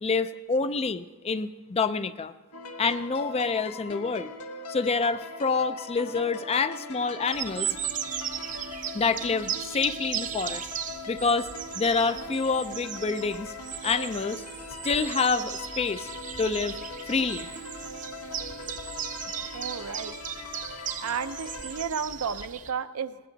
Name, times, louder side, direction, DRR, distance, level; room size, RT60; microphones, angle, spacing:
voice 1, 0.0-2.3 2.8-4.3 4.7-7.8 8.9-10.6 11.1-11.5 11.7-13.5 13.8-14.4 14.8-16.1 16.4-16.8 17.1-17.5, left 4 dB, 25° left, 13 dB, 0.4 m, -27 dB
sound 1, 2.5-21.8, left 3 dB, 75° left, 1.2 m, -41 dB
sound 2, 7.3-22.7, right 9 dB, 35° right, 0.6 m, -37 dB
voice 2, 19.5-20.2 21.0-23.2, right 6 dB, 75° right, 11 dB, 0.6 m, -32 dB
19.5 x 18.5 x 4.0 m, 1.3 s
head